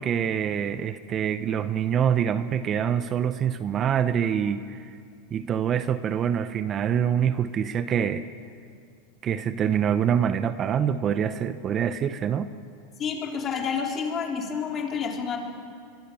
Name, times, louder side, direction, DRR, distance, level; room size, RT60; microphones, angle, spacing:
voice 1, 0.0-4.9 5.3-8.2 9.2-12.5, right 8 dB, 30° right, 12 dB, 0.9 m, -25 dB
voice 2, 13.0-15.4, left 6 dB, 30° left, 1 dB, 4.3 m, -29 dB
24.5 x 23.5 x 7.1 m, 2.3 s
supercardioid pair, 120°, 0 cm